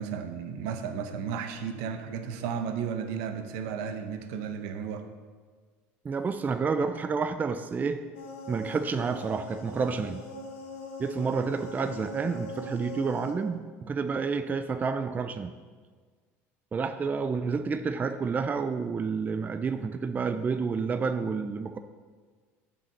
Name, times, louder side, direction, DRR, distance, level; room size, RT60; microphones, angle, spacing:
voice 1, 0.0-5.0, right 7 dB, 75° right, 7 dB, 0.9 m, -34 dB
voice 2, 6.0-8.0 8.5-10.2 11.0-15.5 16.7-21.8, right 5 dB, 25° right, 9 dB, 0.4 m, -29 dB
sound 1, 8.1-13.3, left 3 dB, 85° left, 1.2 m, -41 dB
7.5 x 5.0 x 6.6 m, 1.5 s
supercardioid pair, 95°, 7 cm